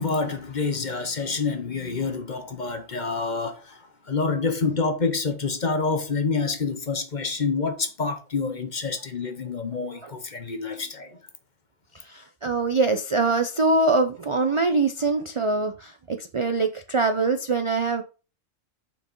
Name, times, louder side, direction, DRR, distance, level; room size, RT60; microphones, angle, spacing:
voice 1, 0.0-3.8 4.1-11.1, left 4 dB, 40° left, 1.0 m, -27 dB
voice 2, 12.0-18.0, right 3 dB, 55° right, 0.3 m, -23 dB
6.1 x 4.5 x 5.3 m
omnidirectional pair, 1.4 m